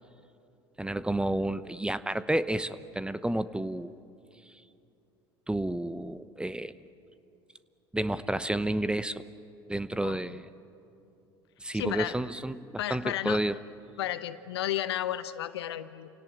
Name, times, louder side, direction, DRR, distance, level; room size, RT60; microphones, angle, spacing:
voice 1, 0.8-4.0 5.5-6.7 7.9-9.2 9.7-10.5 11.6-13.6, right 1 dB, 5° right, 15 dB, 0.9 m, -30 dB
voice 2, 10.0-10.4 11.7-12.1 12.8-13.4 14.0-16.1, left 12 dB, 80° left, 14 dB, 0.9 m, -33 dB
28.0 x 17.5 x 10.0 m, 2.6 s
hypercardioid pair, 75°, 13 cm